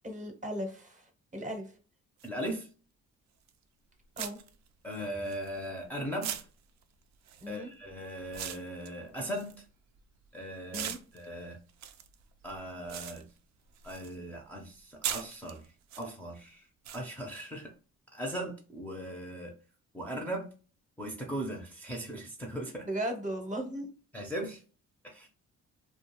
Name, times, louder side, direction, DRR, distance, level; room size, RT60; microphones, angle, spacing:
voice 1, 0.0-1.6 4.2-4.4 7.4-7.7 10.7-11.0 22.9-23.9, right 1 dB, 25° right, 4 dB, 0.8 m, -37 dB
voice 2, 2.2-2.7 4.8-6.5 7.5-9.6 10.3-11.6 12.4-13.2 13.8-15.6 16.0-16.7 16.9-17.7 18.1-19.5 19.9-20.5 21.0-22.9 24.1-24.6 25.0-25.3, right 1 dB, 5° left, -2 dB, 0.6 m, -38 dB
sound 1, 2.2-2.3 3.5-3.6 4.2-5.8 6.2-10.3 10.7-14.2 14.5-16.0 16.8-17.0, right 9 dB, 65° right, 0.4 m, -41 dB
2.3 x 2.3 x 3.0 m, 0.37 s
cardioid pair, 90°, 30 cm